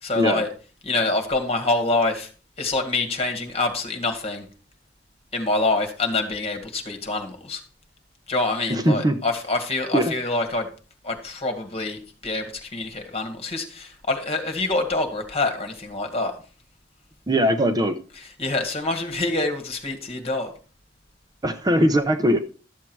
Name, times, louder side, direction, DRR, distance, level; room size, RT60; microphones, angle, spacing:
voice 1, 0.0-0.5 0.8-2.3 2.6-4.5 5.3-7.6 8.3-10.7 11.0-16.3 18.1-20.5, left 2 dB, 35° left, 5 dB, 2.0 m, -26 dB
voice 2, 8.7-9.2 9.9-10.1 17.3-18.0 21.4-22.4, equal, 20° right, 8 dB, 0.7 m, -20 dB
12.5 x 7.5 x 4.6 m, 0.37 s
head